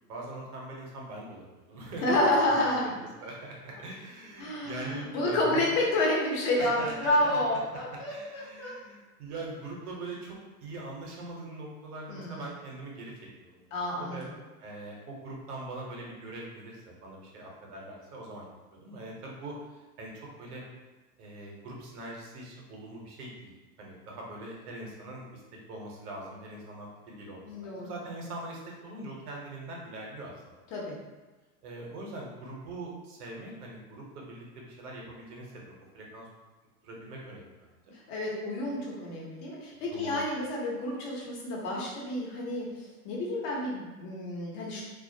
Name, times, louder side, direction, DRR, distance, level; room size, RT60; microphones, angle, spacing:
voice 1, 0.0-2.6 3.2-5.6 6.5-7.4 7.9-13.1 13.4-13.6 14.0-14.3 14.6-20.6 21.2-23.5 23.8-25.4 25.7-30.3 31.6-36.3 36.8-37.5 37.9-38.0 39.9-40.2, right 2 dB, 75° right, -2 dB, 0.9 m, -42 dB
voice 2, 2.0-2.9 4.4-8.7 12.1-12.5 13.7-14.3 27.4-27.9 30.7-31.0 37.9-44.8, left 1 dB, 50° left, -3 dB, 0.9 m, -29 dB
2.4 x 2.0 x 2.7 m, 1.2 s
hypercardioid pair, 100°, 46 cm